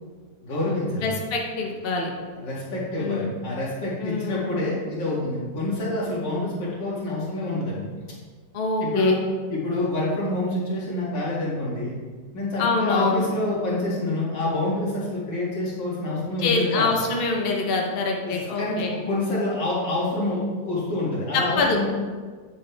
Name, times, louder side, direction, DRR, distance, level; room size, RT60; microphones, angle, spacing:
voice 1, 0.4-1.1 2.4-7.8 8.8-9.2 9.5-12.0 12.3-16.9 18.2-21.9, left 2 dB, 80° left, -6 dB, 2.9 m, -27 dB
voice 2, 1.0-2.1 3.0-3.3 4.0-4.5 8.5-9.2 12.6-13.3 16.4-19.0 21.3-21.9, left 3 dB, 40° left, 0 dB, 1.0 m, -25 dB
8.9 x 6.9 x 3.4 m, 1.5 s
omnidirectional pair, 1.9 m